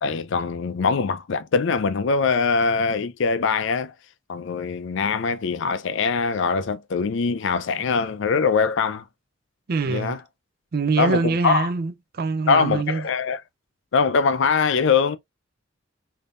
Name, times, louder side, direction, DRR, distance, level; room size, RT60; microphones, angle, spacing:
voice 1, 0.0-3.9 4.3-9.0 9.8-10.2 11.0-11.7 12.5-13.4 13.9-15.2, left 5 dB, 65° left, 0.5 m, -22 dB
voice 2, 9.7-10.2 10.7-13.1, right 4 dB, 50° right, 0.5 m, -24 dB
3.5 x 2.8 x 2.4 m
head